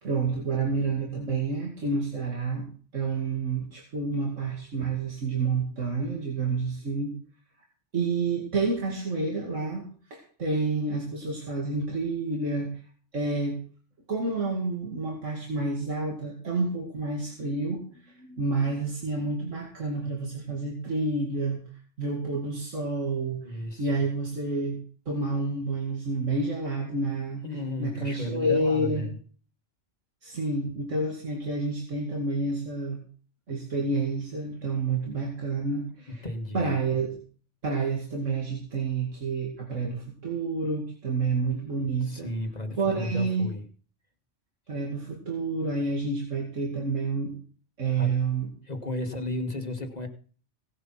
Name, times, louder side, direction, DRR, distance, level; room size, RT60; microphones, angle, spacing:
voice 1, 0.0-2.6 2.9-7.2 7.9-9.9 10.1-12.8 13.1-13.6 14.1-21.6 22.0-24.8 25.1-27.4 27.8-29.0 30.2-33.0 33.5-36.2 36.5-37.2 37.6-42.3 42.8-43.5 44.7-47.4 47.8-48.5, right 3 dB, 90° right, 0 dB, 2.7 m, -29 dB
voice 2, 23.4-23.9 27.4-29.2 36.2-36.8 42.0-43.6 47.9-48.1 48.6-50.1, left 1 dB, 35° left, 5 dB, 1.8 m, -34 dB
18.0 x 7.7 x 5.9 m, 0.42 s
omnidirectional pair, 1.2 m